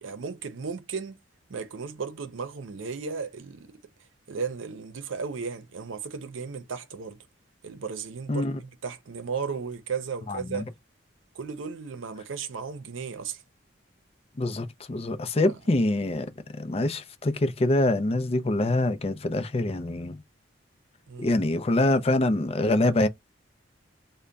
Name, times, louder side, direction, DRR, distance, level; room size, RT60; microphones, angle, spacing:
voice 1, 0.0-1.2 1.5-3.7 4.3-7.2 7.6-10.7 11.3-13.4 15.4-15.6 21.1-21.4, right 5 dB, 90° right, 0.6 m, -35 dB
voice 2, 8.3-8.6 10.3-10.6 14.4-16.3 16.6-20.2 21.2-23.1, left 2 dB, 30° left, 0.5 m, -25 dB
3.3 x 2.1 x 3.8 m
head